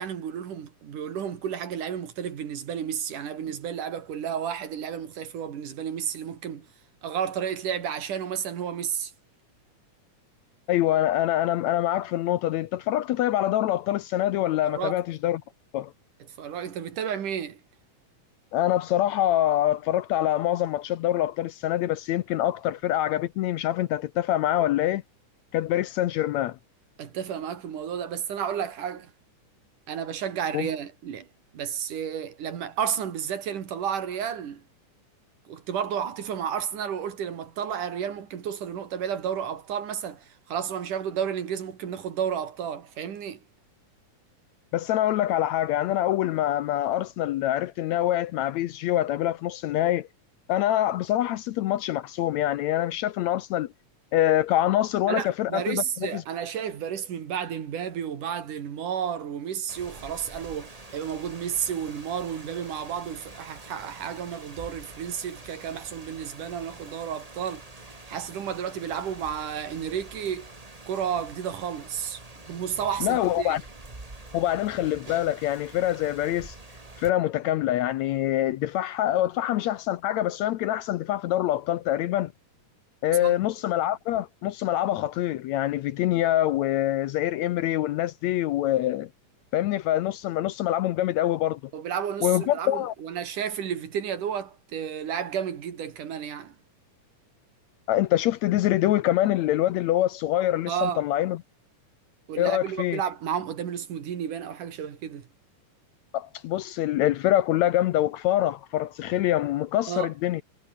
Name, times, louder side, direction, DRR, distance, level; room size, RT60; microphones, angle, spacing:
voice 1, 0.0-6.7 7.0-9.1 14.6-15.0 16.2-17.6 27.0-29.1 29.9-31.3 31.5-34.6 35.5-43.4 55.1-67.6 68.1-70.5 70.9-72.2 72.5-73.6 83.2-83.4 91.7-96.6 100.7-101.0 102.3-105.3 109.9-110.1, right 8 dB, 75° right, 3.9 m, -32 dB
voice 2, 10.7-15.4 15.7-15.9 18.5-25.0 25.5-26.6 30.5-30.7 44.7-50.1 50.5-53.7 54.1-56.2 73.0-73.6 74.3-76.6 77.0-82.3 83.0-89.1 89.5-91.6 92.2-92.9 97.9-101.4 102.4-103.0 106.1-110.4, left 13 dB, 75° left, 1.8 m, -25 dB
Rain, 59.7-77.1, right 2 dB, 15° right, 1.9 m, -46 dB
omnidirectional pair, 3.7 m